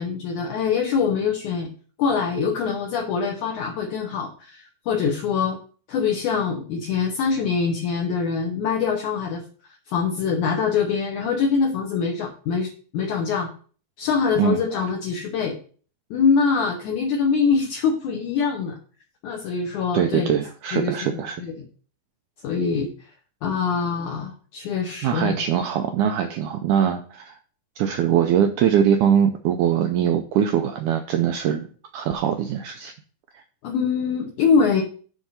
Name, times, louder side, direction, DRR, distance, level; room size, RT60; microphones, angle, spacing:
voice 1, 0.0-1.7 2.0-5.6 5.9-9.4 9.9-13.5 14.0-15.6 16.1-18.8 19.2-20.3 20.7-21.7 22.4-22.9 23.4-25.4 33.6-34.8, left 5 dB, 70° left, 1 dB, 2.1 m, -24 dB
voice 2, 19.9-21.4 25.0-27.4 27.8-31.7 31.9-32.9 33.3-33.4, right 9 dB, 85° right, 6 dB, 1.7 m, -22 dB
9.6 x 3.7 x 5.5 m, 0.41 s
omnidirectional pair, 4.2 m